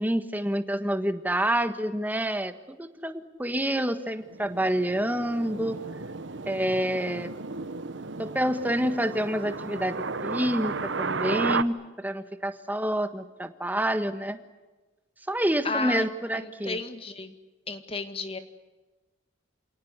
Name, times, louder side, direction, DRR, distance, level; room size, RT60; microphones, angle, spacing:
voice 1, 0.0-5.8 6.4-7.3 8.2-14.4 15.3-16.8, right 1 dB, 10° right, 10 dB, 1.4 m, -28 dB
sound 1, 4.2-11.6, right 4 dB, 65° right, 1.0 m, -34 dB
voice 2, 15.6-16.1 16.3-17.3 17.7-18.4, left 3 dB, 30° left, 9 dB, 1.9 m, -33 dB
28.0 x 18.5 x 9.8 m, 1.2 s
head